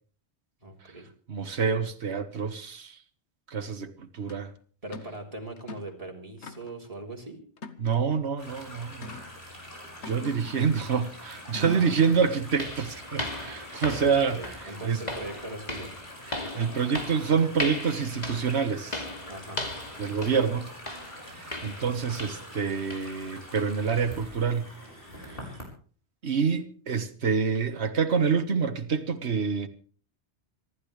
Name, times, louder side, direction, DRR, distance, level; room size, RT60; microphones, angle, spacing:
voice 1, 0.6-1.1 4.8-7.4 11.6-12.4 14.0-15.9 19.3-19.7, right 2 dB, 35° right, 3.8 m, -41 dB
voice 2, 1.3-3.0 3.5-4.5 7.8-9.1 10.1-15.0 16.3-19.0 20.0-20.7 21.3-24.7 26.2-29.7, right 6 dB, 75° right, 1.7 m, -27 dB
sound 1, 4.3-4.4 4.9-5.2 5.6-6.0 6.4-6.9 7.6-8.2 9.0-9.3 10.0-10.9 11.6-12.1, left 3 dB, 90° left, 1.5 m, -41 dB
sound 2, 8.4-25.6, left 1 dB, 55° left, 5.9 m, -45 dB
sound 3, 11.4-11.5 12.0-22.6 22.9-23.2 23.6-23.7 24.2-24.3 24.9-25.0, left 1 dB, 40° left, 2.9 m, -38 dB
27.0 x 13.0 x 3.3 m
omnidirectional pair, 1.1 m